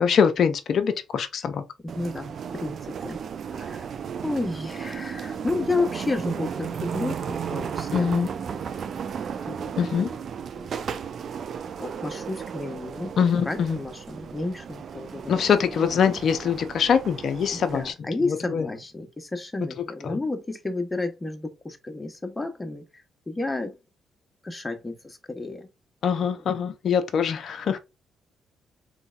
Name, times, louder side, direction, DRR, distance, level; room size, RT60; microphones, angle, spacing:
voice 1, 0.0-1.6 7.9-8.3 9.8-10.1 13.2-13.8 15.3-17.9 18.2-18.7 19.8-20.2 26.0-27.8, left 7 dB, 60° left, 0.5 m, -23 dB
voice 2, 1.9-3.2 3.5-3.8 4.2-8.1 9.5-10.1 10.5-10.7 11.8-13.1 13.5-15.3 15.7-15.9 17.7-22.8 23.3-23.7 24.4-25.7, left 2 dB, 20° left, 1.0 m, -31 dB
sound 1, 1.9-17.9, right 7 dB, 60° right, 0.4 m, -34 dB
3.8 x 3.2 x 2.3 m
hypercardioid pair, 50°, 0 cm